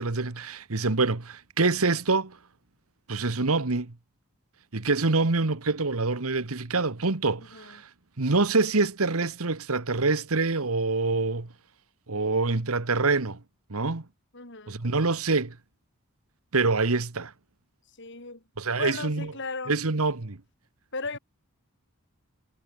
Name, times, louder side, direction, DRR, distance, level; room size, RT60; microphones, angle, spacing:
voice 1, 0.0-2.4 3.1-3.9 4.7-7.9 8.2-11.5 12.1-13.4 13.7-14.0 14.7-15.6 16.5-17.3 18.6-19.3 19.7-20.4, right 3 dB, 70° right, 1.4 m, -26 dB
voice 2, 14.3-14.8 18.0-19.7 20.9-21.2, left 3 dB, 55° left, 4.7 m, -36 dB
head